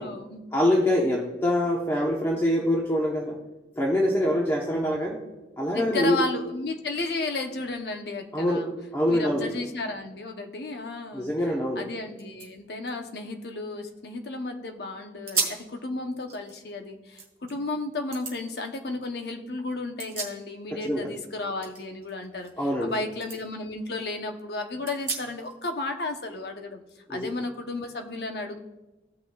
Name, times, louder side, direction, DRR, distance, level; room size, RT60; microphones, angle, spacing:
voice 1, 0.0-0.4 4.7-5.1 5.7-8.7 9.1-22.5 22.8-26.8 27.1-28.6, left 2 dB, 60° left, 5 dB, 0.8 m, -33 dB
voice 2, 0.5-3.4 3.8-5.2 5.6-6.2 8.3-8.7 8.9-9.5 11.1-11.9 20.7-21.1 22.6-22.9 27.1-27.3, left 1 dB, 15° left, -2 dB, 0.8 m, -24 dB
sound 1, 11.8-11.9 12.1-14.3 14.7-14.9 15.2-15.7 16.1-17.5 18.1-18.4 19.7-20.8 21.1-22.9 23.2-23.4 23.9-24.0 24.8-25.6, right 4 dB, 15° right, 2.8 m, -36 dB
17.0 x 5.9 x 2.3 m, 1.1 s
head